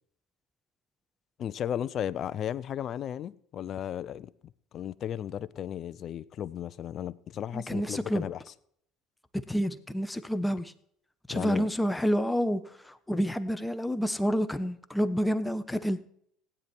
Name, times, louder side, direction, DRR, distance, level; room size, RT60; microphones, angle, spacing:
voice 1, 1.4-4.3 4.7-8.4 11.3-11.7, left 10 dB, 50° left, 0.6 m, -35 dB
voice 2, 7.5-8.2 9.5-10.7 11.3-16.0, equal, 5° left, 1.1 m, -29 dB
16.5 x 10.0 x 4.6 m
hypercardioid pair, 80°, 0 cm